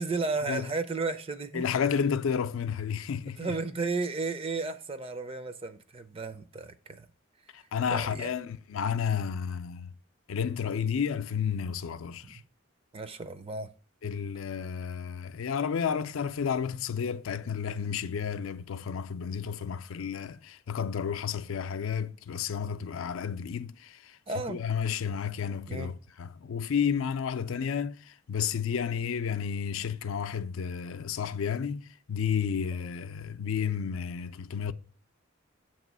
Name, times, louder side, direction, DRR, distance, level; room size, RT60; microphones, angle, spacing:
voice 1, 0.0-1.6 3.4-7.1 7.9-8.3 12.2-12.3 12.9-13.7 24.3-24.6 25.7-25.9, right 3 dB, 25° right, 0.4 m, -33 dB
voice 2, 1.5-3.6 7.5-9.9 10.3-12.4 14.0-34.7, left 7 dB, 70° left, 0.4 m, -31 dB
7.4 x 3.0 x 6.0 m
head